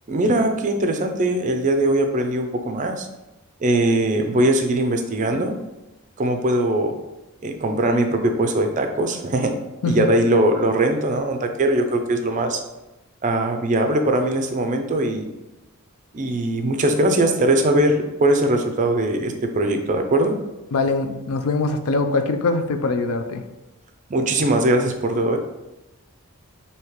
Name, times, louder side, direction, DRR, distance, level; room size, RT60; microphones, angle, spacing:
voice 1, 0.1-3.1 3.6-5.5 6.2-6.9 7.4-9.5 9.8-12.6 13.2-15.3 16.1-20.3 24.1-25.4, right 1 dB, 35° right, 5 dB, 0.4 m, -20 dB
voice 2, 20.7-23.4, left 3 dB, 70° left, 8 dB, 0.4 m, -22 dB
4.9 x 2.8 x 3.1 m, 0.99 s
head